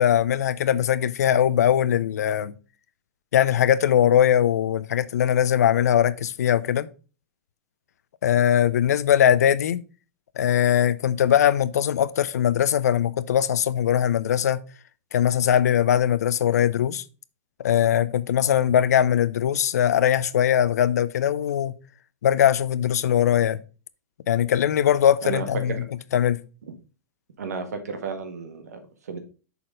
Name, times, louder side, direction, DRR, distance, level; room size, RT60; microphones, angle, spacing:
voice 1, 0.0-2.5 3.3-6.9 8.2-9.8 10.4-14.6 15.1-17.0 17.6-21.7 22.2-23.6 24.3-25.8 26.1-26.4, left 10 dB, 85° left, 0.6 m, -21 dB
voice 2, 25.2-25.8 27.4-29.2, right 5 dB, 85° right, 1.6 m, -33 dB
6.7 x 4.2 x 5.1 m
hypercardioid pair, 115°, 8 cm